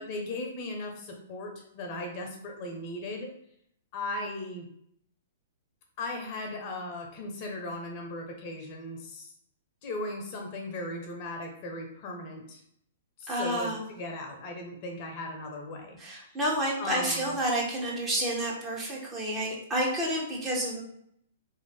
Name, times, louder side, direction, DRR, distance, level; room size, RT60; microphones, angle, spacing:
voice 1, 0.0-3.3 3.9-4.6 6.0-9.3 9.8-12.6 13.2-16.4 16.8-17.4, left 2 dB, 40° left, 2 dB, 0.7 m, -37 dB
voice 2, 13.3-13.9 16.0-20.8, right 1 dB, 15° right, -4 dB, 1.1 m, -30 dB
3.4 x 2.6 x 3.4 m, 0.69 s
figure-of-eight pair, 115°, 0 cm